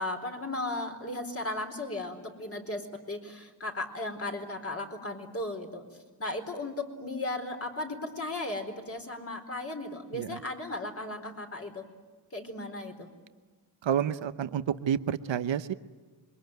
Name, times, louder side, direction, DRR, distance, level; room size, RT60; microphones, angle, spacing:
voice 1, 0.0-5.8 6.2-11.9 12.3-13.1, left 2 dB, 30° left, 4 dB, 4.2 m, -36 dB
voice 2, 13.8-15.7, right 9 dB, 80° right, 12 dB, 1.0 m, -29 dB
26.5 x 22.5 x 9.3 m, 1.4 s
cardioid pair, 85°, 44 cm